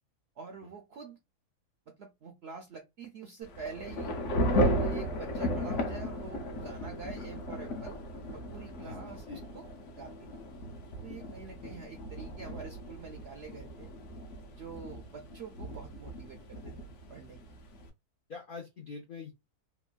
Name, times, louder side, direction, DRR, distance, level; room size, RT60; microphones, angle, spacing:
voice 1, 0.4-1.2 1.9-4.2 4.5-8.0 8.3-9.2 9.5-10.3 11.0-13.9 14.5-16.7 17.1-17.6, right 5 dB, 75° right, 0.5 m, -46 dB
Thunder / Rain, 3.4-17.9, equal, 60° left, 0.9 m, -35 dB
voice 2, 8.8-9.4 11.1-11.2 18.3-19.3, left 4 dB, 85° left, 0.4 m, -45 dB
3.0 x 2.3 x 2.3 m
omnidirectional pair, 1.6 m